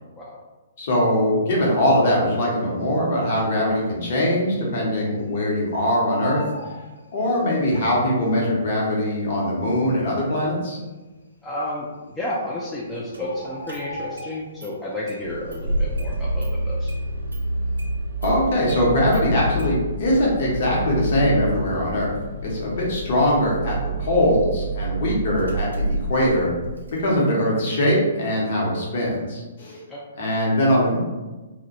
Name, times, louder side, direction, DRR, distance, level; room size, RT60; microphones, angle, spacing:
voice 1, 0.8-6.4 7.1-10.8 18.2-22.1 22.4-26.5 27.0-29.8 30.2-31.0, equal, 50° left, -3 dB, 0.8 m, -21 dB
Bird, 3.1-3.7 4.0-4.1 4.4-5.6 5.8-7.7 8.5-8.6 9.3-9.4 9.6-9.7 10.3-10.8 11.7-11.8 12.2-12.3 12.5-14.8 15.1-15.5 15.8-17.1 17.5-17.7, left 3 dB, 80° left, 0.5 m, -39 dB
voice 2, 11.4-11.9 12.1-16.9 29.9-30.0, left 1 dB, 10° left, -5 dB, 0.3 m, -31 dB
Engine starting, 13.1-13.2 13.7-14.3 14.6-14.7 15.1-27.0, right 1 dB, 75° right, 0.5 m, -28 dB
2.2 x 2.1 x 2.7 m, 1.2 s
figure-of-eight pair, 120°, 0 cm